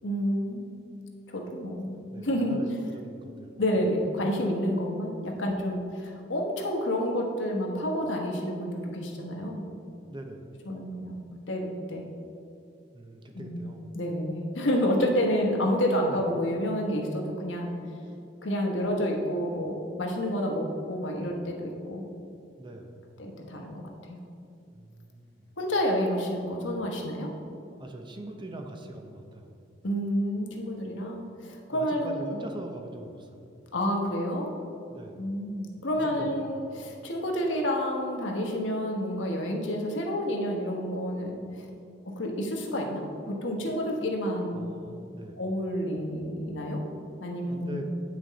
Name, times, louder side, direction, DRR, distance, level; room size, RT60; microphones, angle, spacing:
voice 1, 0.0-0.7 1.3-2.0 2.2-2.6 3.6-9.6 10.7-11.2 11.5-12.1 13.3-13.7 13.9-17.7 18.4-22.0 23.2-24.2 25.6-27.3 29.8-32.5 33.7-34.5 35.2-41.6 42.0-44.8 45.4-46.8 47.2-47.8, equal, 80° left, 1 dB, 1.2 m, -29 dB
voice 2, 1.8-3.6 10.1-10.7 12.9-14.0 16.1-16.2 22.6-23.0 24.7-25.6 27.8-29.6 31.7-33.4 34.9-35.3 36.0-36.6 44.5-45.5 47.5-47.8, right 1 dB, 25° right, 4 dB, 0.7 m, -42 dB
8.6 x 6.2 x 4.1 m, 2.5 s
head